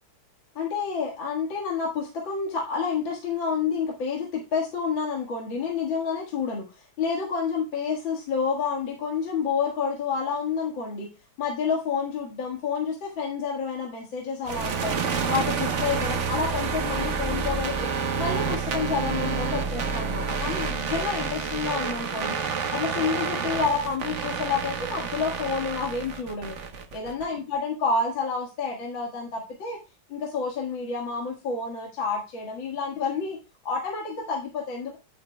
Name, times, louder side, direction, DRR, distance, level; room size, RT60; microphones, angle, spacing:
voice 1, 0.6-11.1 11.4-15.0 15.3-17.9 18.2-22.4 22.7-26.6 26.9-29.8 30.1-33.4 33.6-35.0, left 5 dB, 65° left, -1 dB, 2.4 m, -29 dB
sound 1, 14.4-27.2, right 5 dB, 45° right, 1.0 m, -29 dB
9.5 x 9.0 x 2.2 m, 0.29 s
omnidirectional pair, 2.3 m